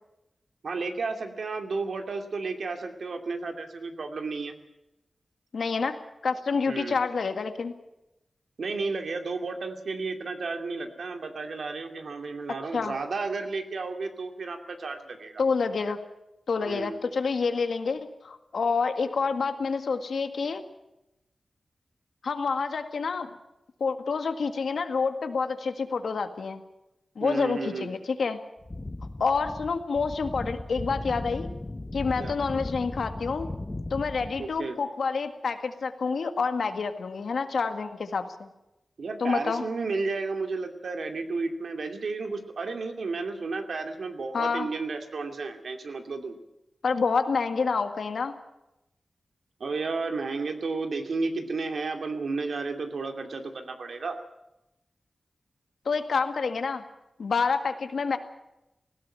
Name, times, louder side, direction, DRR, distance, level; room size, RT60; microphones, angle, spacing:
voice 1, 0.6-4.6 6.7-7.0 8.6-15.4 16.6-17.0 27.2-27.9 32.2-32.4 34.4-34.8 39.0-46.4 49.6-54.2, right 3 dB, 80° right, 5 dB, 2.5 m, -32 dB
voice 2, 5.5-7.7 12.7-12.9 15.4-16.0 16.5-20.6 22.2-23.3 23.8-26.6 27.2-28.4 29.2-31.5 31.9-33.5 33.9-38.5 39.2-39.6 44.3-44.7 46.8-48.3 55.9-56.8 57.2-58.2, left 5 dB, 85° left, 8 dB, 1.8 m, -28 dB
sound 1, 28.6-34.6, left 2 dB, 25° left, 0.9 m, -37 dB
18.5 x 16.5 x 8.9 m, 0.91 s
wide cardioid pair, 105°, 0 cm